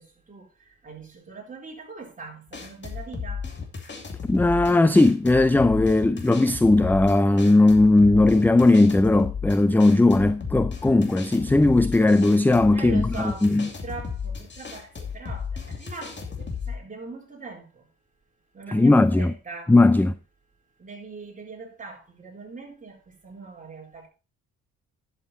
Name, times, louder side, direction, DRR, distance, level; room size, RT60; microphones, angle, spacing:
voice 1, 0.0-3.5 12.7-17.8 18.5-19.7 20.8-24.1, right 4 dB, 25° right, 4.2 m, -41 dB
sound 1, 2.5-16.8, left 6 dB, 35° left, 2.7 m, -34 dB
voice 2, 4.3-13.7 18.7-19.3 19.7-20.2, left 2 dB, 5° left, 0.5 m, -18 dB
11.0 x 7.4 x 4.2 m
cardioid pair, 90°, 30 cm